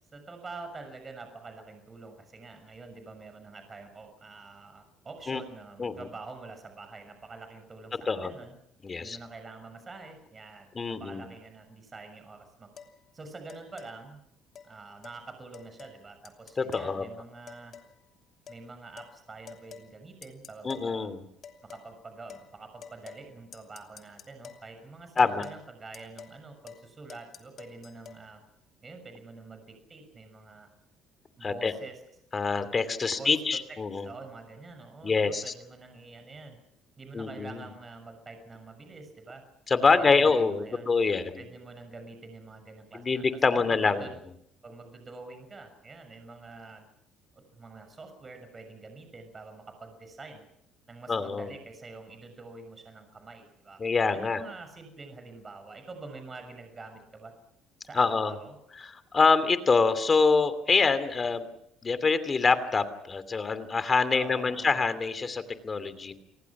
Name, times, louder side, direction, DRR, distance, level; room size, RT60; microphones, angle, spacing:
voice 1, 0.1-8.5 9.0-12.7 13.1-14.2 14.6-17.8 18.5-21.1 21.6-28.4 28.8-30.7 31.4-32.0 33.0-33.4 34.0-36.6 37.0-39.4 39.9-41.0 41.4-43.2 43.5-44.1 44.6-46.9 47.3-50.5 50.9-57.3 57.8-58.5 64.1-64.8, right 3 dB, 30° right, 7 dB, 6.6 m, -46 dB
voice 2, 8.8-9.2 10.7-11.2 16.6-17.0 20.6-21.2 25.2-25.5 31.4-31.7 32.3-34.1 35.0-35.5 37.1-37.6 39.7-41.4 42.9-44.0 51.1-51.5 53.8-54.4 57.9-58.3 58.8-61.5 61.8-66.1, left 4 dB, 30° left, 13 dB, 2.8 m, -25 dB
sound 1, 12.8-12.9 13.5-13.9 14.5-14.7 15.0-15.2 15.5-16.0 16.2-16.9 17.5-17.9 18.5-18.6 19.0-19.1 19.5-19.9 20.2-20.9 21.4-21.9 22.3-22.5 22.8-23.3 23.5-24.7 25.2-25.6 25.9-26.4 26.7-26.8 27.1-28.2, left 7 dB, 55° left, 2.9 m, -48 dB
29.5 x 19.5 x 6.1 m, 0.76 s
supercardioid pair, 80°, 0 cm